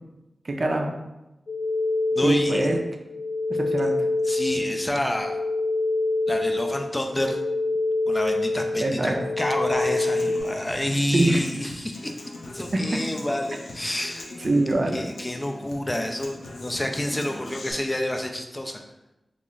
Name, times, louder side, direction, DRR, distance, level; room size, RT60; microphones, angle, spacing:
voice 1, 0.4-1.0 2.2-2.8 3.5-4.0 8.8-9.2 11.1-11.4 14.4-15.1, right 2 dB, 45° right, 2 dB, 0.5 m, -23 dB
sound 1, 1.5-10.4, left 2 dB, 70° left, 0.9 m, -26 dB
voice 2, 2.1-2.7 4.2-5.4 6.3-7.4 8.1-12.1 12.5-14.3 14.9-18.8, left 1 dB, 20° left, 3 dB, 0.3 m, -28 dB
Human voice / Acoustic guitar, 9.7-17.7, left 2 dB, 90° left, 0.5 m, -40 dB
3.0 x 2.4 x 3.8 m, 0.96 s
wide cardioid pair, 95°, 0 cm